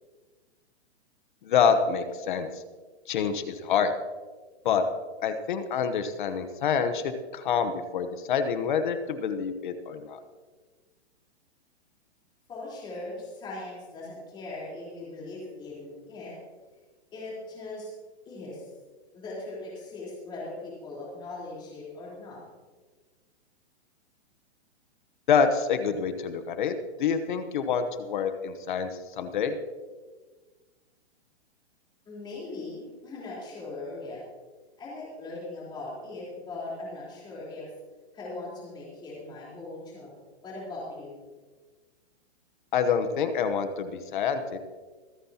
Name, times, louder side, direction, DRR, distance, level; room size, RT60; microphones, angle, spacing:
voice 1, 1.4-2.5 3.1-3.9 4.6-4.8 5.2-10.2 25.3-26.7 27.0-29.5 42.7-44.6, left 6 dB, 45° left, 9 dB, 1.0 m, -27 dB
voice 2, 12.5-16.4 17.1-17.9 18.3-18.7 19.1-22.4 32.1-34.2 34.8-37.7 38.1-40.1 40.4-41.2, left 2 dB, 15° left, -6 dB, 3.9 m, -39 dB
25.0 x 9.4 x 2.9 m, 1.4 s
hypercardioid pair, 170°, 34 cm